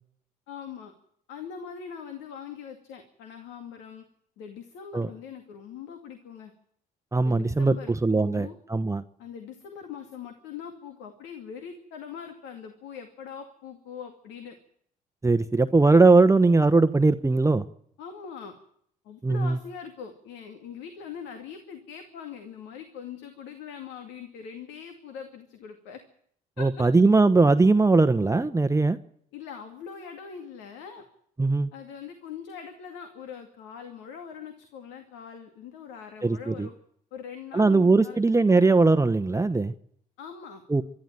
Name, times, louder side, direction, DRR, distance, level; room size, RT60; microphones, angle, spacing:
voice 1, 0.5-0.9 1.3-4.0 4.4-6.5 7.2-8.5 9.2-14.6 18.0-18.6 19.0-26.0 26.6-26.9 29.3-31.1 31.7-36.7 37.1-38.2 40.2-40.6, left 7 dB, 75° left, 6 dB, 2.3 m, -42 dB
voice 2, 7.1-7.7 8.0-9.0 15.2-17.7 19.2-19.6 26.6-29.0 31.4-31.7 36.2-36.7 37.5-39.7 40.7-40.8, right 3 dB, 15° right, 10 dB, 1.0 m, -20 dB
24.5 x 13.0 x 9.2 m, 0.68 s
hypercardioid pair, 55°, 19 cm